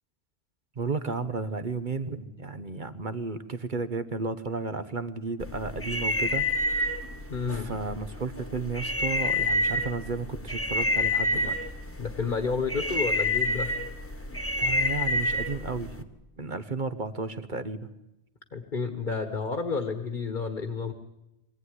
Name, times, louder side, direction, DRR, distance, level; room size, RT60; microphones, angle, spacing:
voice 1, 0.8-6.5 7.4-11.6 14.6-16.1 16.4-17.8, right 4 dB, 45° right, 11 dB, 1.2 m, -33 dB
sound 1, 5.4-16.0, left 1 dB, 10° left, 1.4 m, -29 dB
voice 2, 7.3-7.7 12.0-13.7 18.5-20.9, left 4 dB, 45° left, 9 dB, 1.6 m, -30 dB
23.5 x 16.0 x 9.8 m, 0.94 s
omnidirectional pair, 1.1 m